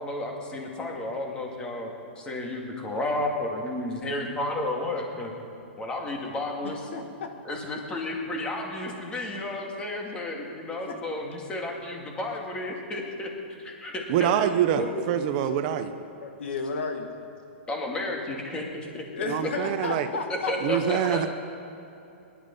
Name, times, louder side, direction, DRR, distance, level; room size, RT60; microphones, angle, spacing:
voice 1, 0.0-1.9 2.2-5.3 5.8-6.8 7.4-13.3 13.6-14.3 14.8-15.1 17.7-18.6 18.9-19.0 20.5-21.2, left 2 dB, 15° left, 0 dB, 2.3 m, -32 dB
voice 2, 6.6-7.3 13.5-13.6 16.2-17.1 19.1-21.1, left 4 dB, 70° left, 4 dB, 2.1 m, -33 dB
voice 3, 14.1-15.9 19.3-20.1 20.6-21.3, right 10 dB, 40° right, 9 dB, 0.8 m, -25 dB
20.0 x 11.5 x 5.5 m, 2.9 s
hypercardioid pair, 150°, 7 cm